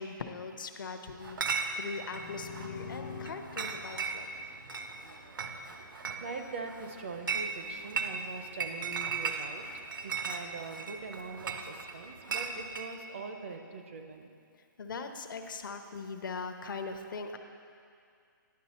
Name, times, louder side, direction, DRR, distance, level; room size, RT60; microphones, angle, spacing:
voice 1, 0.0-4.3 14.8-17.4, left 4 dB, 70° left, 6 dB, 0.7 m, -40 dB
Chatter / Chink clink, 1.2-12.9, right 5 dB, 70° right, 0.7 m, -37 dB
sound 1, 1.9-5.7, left 5 dB, 25° left, 0.4 m, -46 dB
voice 2, 6.2-9.6 10.0-14.3, right 4 dB, 35° right, 5 dB, 0.5 m, -42 dB
10.5 x 6.2 x 4.2 m, 2.3 s
hypercardioid pair, 175°, 11 cm